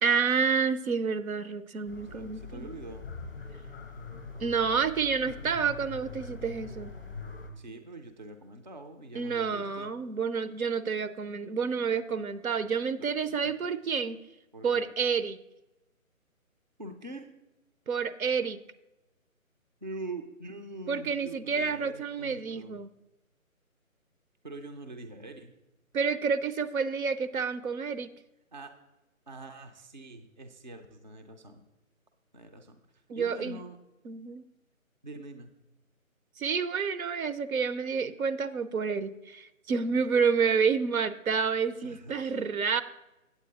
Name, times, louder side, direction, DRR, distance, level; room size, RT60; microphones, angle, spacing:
voice 1, 0.0-2.7 4.4-6.9 9.1-14.2 14.6-15.4 17.9-18.6 20.9-22.9 25.9-28.1 33.1-33.6 34.1-34.4 36.4-42.8, right 5 dB, 75° right, 12 dB, 0.7 m, -29 dB
sound 1, 1.9-7.5, left 4 dB, 15° left, 0.6 m, -43 dB
voice 2, 2.0-3.1 7.6-9.9 13.0-13.5 14.5-14.9 16.8-17.3 19.8-22.8 24.4-25.5 28.5-28.7 29.3-31.6 32.3-33.8 35.0-35.5 41.8-42.4, right 2 dB, 35° right, 5 dB, 0.4 m, -44 dB
8.3 x 8.2 x 4.0 m, 0.98 s
figure-of-eight pair, 160°, 42 cm